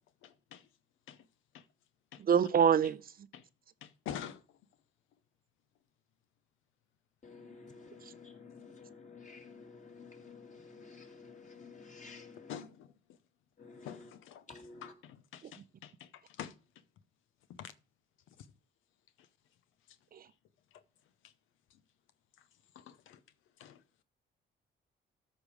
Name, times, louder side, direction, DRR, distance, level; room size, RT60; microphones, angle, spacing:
voice 1, 0.2-0.6 1.1-1.2 1.5-1.6 2.1-2.2 3.3-3.4 3.8-4.4 12.5-12.7 13.9-14.4 15.3-16.6 17.6-17.7 22.8-23.2 23.6-23.8, left 9 dB, 85° left, 0.7 m, -45 dB
voice 2, 2.2-3.3 15.4-15.5 20.1-20.3, right 7 dB, 50° right, 0.6 m, -27 dB
voice 3, 7.2-12.6 13.6-14.1 14.5-15.0, left 4 dB, 40° left, 2.6 m, -52 dB
13.5 x 5.3 x 4.8 m
cardioid pair, 90°, 20 cm